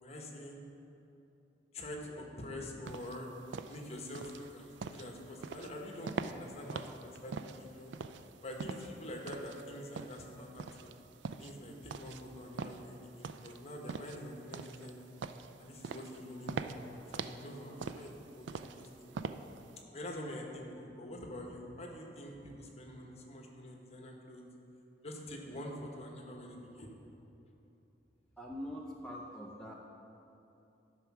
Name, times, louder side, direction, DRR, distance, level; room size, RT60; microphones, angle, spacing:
voice 1, 0.0-0.6 1.7-3.3 3.7-7.9 8.4-10.9 11.4-15.1 15.6-19.2 19.9-24.4 25.0-26.9, left 1 dB, 35° left, 1 dB, 1.1 m, -46 dB
Footsteps Tile Male Sneakers Slow Pace, 2.9-19.8, right 5 dB, 75° right, 0.4 m, -43 dB
voice 2, 28.4-29.7, equal, 5° left, -3 dB, 0.5 m, -43 dB
11.5 x 4.5 x 5.9 m, 2.9 s
head